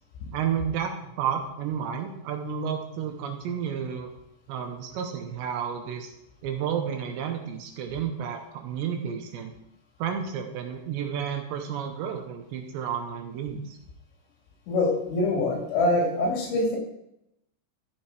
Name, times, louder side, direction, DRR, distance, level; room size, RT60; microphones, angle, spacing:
voice 1, 0.3-4.1 4.5-6.1 6.4-9.5 10.0-13.8, right 8 dB, 80° right, 4 dB, 2.8 m, -31 dB
voice 2, 14.7-16.8, left 2 dB, 70° left, 1 dB, 4.5 m, -24 dB
13.5 x 7.5 x 4.8 m, 0.84 s
omnidirectional pair, 5.6 m